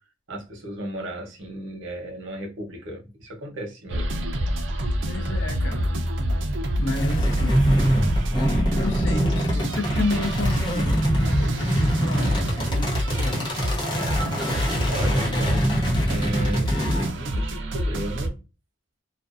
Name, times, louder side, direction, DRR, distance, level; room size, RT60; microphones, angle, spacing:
voice 1, 0.3-4.2 14.9-16.7 17.1-18.3, right 1 dB, 85° right, 0.9 m, -34 dB
sound 1, 3.9-18.3, equal, 65° right, 0.4 m, -26 dB
voice 2, 5.1-5.9 6.8-7.6 8.7-13.6, left 2 dB, 65° left, 0.6 m, -31 dB
sound 2, 6.9-17.1, equal, 25° left, 0.7 m, -25 dB
2.5 x 2.2 x 2.4 m
head